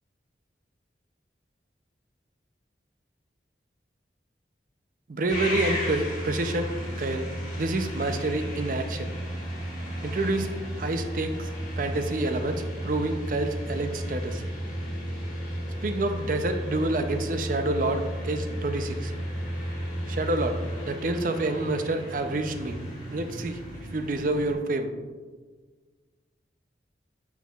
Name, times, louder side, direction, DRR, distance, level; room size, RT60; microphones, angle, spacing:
voice 1, 5.1-6.7 7.0-7.2 7.6-9.1 10.0-10.5 10.8-14.4 15.8-19.1 20.1-20.6 20.9-22.8 23.1-23.6 23.9-24.9, right 2 dB, 45° right, 8 dB, 0.4 m, -28 dB
sound 1, 5.3-24.5, equal, 40° left, 1.9 m, -33 dB
9.1 x 4.7 x 2.3 m, 1.4 s
head